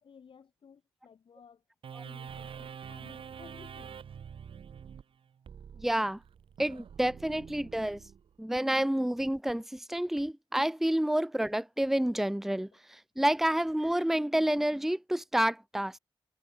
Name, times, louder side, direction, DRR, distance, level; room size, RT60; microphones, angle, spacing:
voice 1, 0.0-1.6 2.0-4.0 12.7-12.8, left 6 dB, 75° left, 6.0 m, -56 dB
sound 1, 1.8-8.6, right 7 dB, 85° right, 3.1 m, -46 dB
voice 2, 5.8-6.2 6.6-8.0 8.4-12.7 13.2-16.0, right 1 dB, 5° right, 0.7 m, -29 dB
cardioid pair, 80°, 9 cm